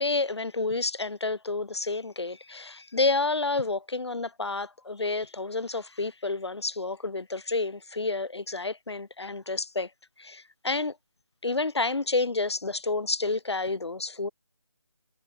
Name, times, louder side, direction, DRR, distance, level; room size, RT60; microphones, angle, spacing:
voice 1, 0.0-9.9 10.2-11.0 11.4-14.3, left 3 dB, 85° left, 1.3 m, -29 dB
figure-of-eight pair, 170°, 14 cm